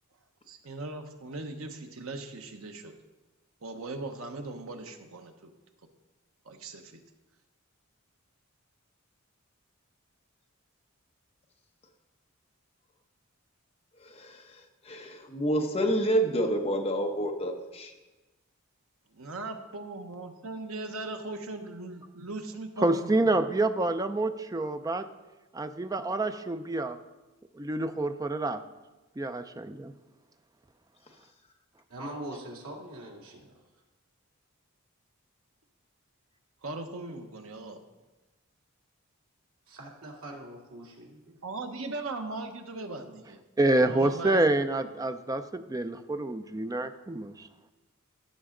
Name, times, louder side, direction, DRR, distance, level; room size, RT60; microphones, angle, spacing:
voice 1, 0.5-2.9 3.6-5.5 6.5-7.0 19.1-23.3 36.6-37.8 41.4-43.4 43.8-44.4 44.8-44.9, right 2 dB, 70° right, 6 dB, 1.0 m, -39 dB
voice 2, 14.0-14.6 14.8-17.9, right 1 dB, 25° left, 2 dB, 1.0 m, -28 dB
voice 3, 22.8-25.1 25.5-27.0 27.5-28.6 29.2-29.9 43.6-47.5, right 2 dB, 15° right, 9 dB, 0.4 m, -27 dB
voice 4, 31.9-33.5 39.7-41.4, right 1 dB, 85° right, -2 dB, 2.2 m, -42 dB
14.5 x 6.2 x 3.8 m, 1.1 s
head